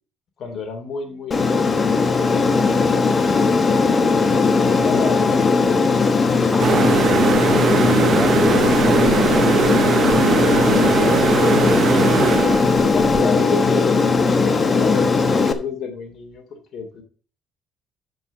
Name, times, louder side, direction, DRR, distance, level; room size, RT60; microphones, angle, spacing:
voice 1, 0.4-3.6 4.6-5.7 8.4-9.5 10.1-11.8 12.6-17.0, left 5 dB, 60° left, 2.7 m, -31 dB
Aircraft, 1.3-15.5, left 4 dB, 30° left, 1.3 m, -18 dB
voice 2, 6.5-9.0, right 1 dB, 10° right, 0.6 m, -29 dB
sound 1, 6.6-13.2, right 8 dB, 55° right, 0.8 m, -21 dB
9.4 x 5.4 x 6.3 m
cardioid pair, 95°, 0 cm